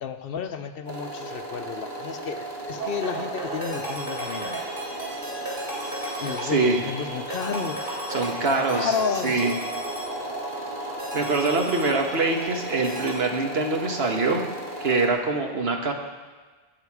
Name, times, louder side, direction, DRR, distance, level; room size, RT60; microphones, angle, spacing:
voice 1, 0.0-4.8 6.2-8.0 8.4-9.6, left 6 dB, 65° left, 9 dB, 0.8 m, -32 dB
sound 1, 0.9-15.1, right 1 dB, 40° right, 2.0 m, -36 dB
sound 2, 2.8-13.1, right 1 dB, 60° right, 3.7 m, -35 dB
voice 2, 6.4-6.8 8.1-8.9 9.2-9.5 11.1-14.4 14.8-15.9, right 3 dB, 75° right, 2 dB, 1.5 m, -24 dB
18.0 x 6.0 x 4.8 m, 1.3 s
omnidirectional pair, 1.1 m